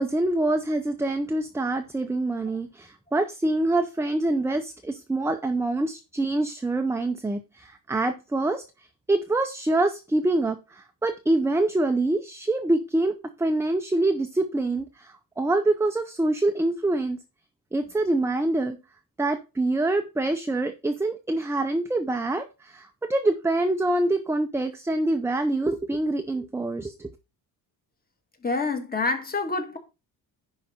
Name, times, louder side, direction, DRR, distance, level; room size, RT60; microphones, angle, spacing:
voice 1, 0.0-8.6 9.1-17.2 17.7-18.8 19.2-27.1, right 2 dB, 5° right, 0.5 m, -25 dB
voice 2, 28.4-29.8, left 3 dB, 25° left, 1.7 m, -27 dB
10.5 x 4.9 x 4.2 m
cardioid pair, 145°, 39 cm